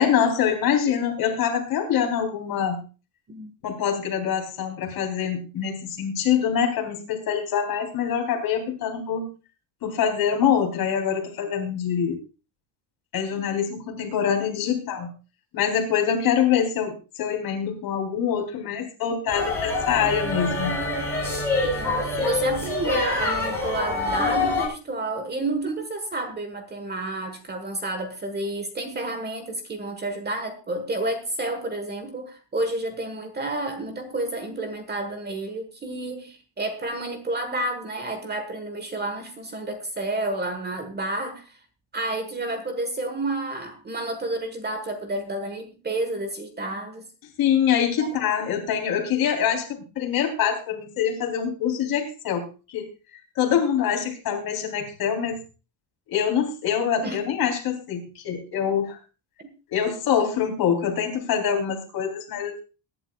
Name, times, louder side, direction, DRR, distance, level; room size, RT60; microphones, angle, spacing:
voice 1, 0.0-2.8 3.6-9.3 9.8-12.2 13.1-15.1 15.5-20.8 47.4-52.9 53.4-55.4 56.1-59.0 59.7-62.6, left 8 dB, 45° left, 2 dB, 3.7 m, -25 dB
sound 1, 19.3-24.7, left 2 dB, 5° left, 7.1 m, -26 dB
voice 2, 21.6-41.6 41.9-47.1 48.0-48.1 57.0-57.2 59.4-59.5, right 2 dB, 20° right, 8 dB, 1.4 m, -30 dB
22.0 x 11.0 x 2.3 m, 0.32 s
cardioid pair, 170°, 48 cm